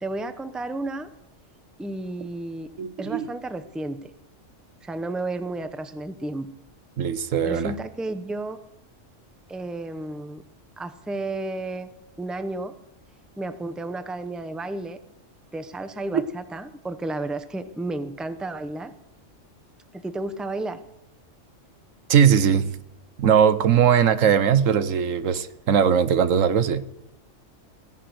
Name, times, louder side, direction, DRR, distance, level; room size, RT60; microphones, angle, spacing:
voice 1, 0.0-1.1 1.8-2.7 3.0-4.1 4.8-6.5 7.4-8.6 9.5-10.4 10.8-11.9 12.2-12.7 13.4-15.0 15.5-18.9 19.9-20.8, right 2 dB, ahead, 0.7 m, -32 dB
voice 2, 2.8-3.3 7.0-7.7 22.1-22.7 23.2-26.9, right 8 dB, 85° right, 1.3 m, -20 dB
16.5 x 11.0 x 7.7 m
omnidirectional pair, 1.3 m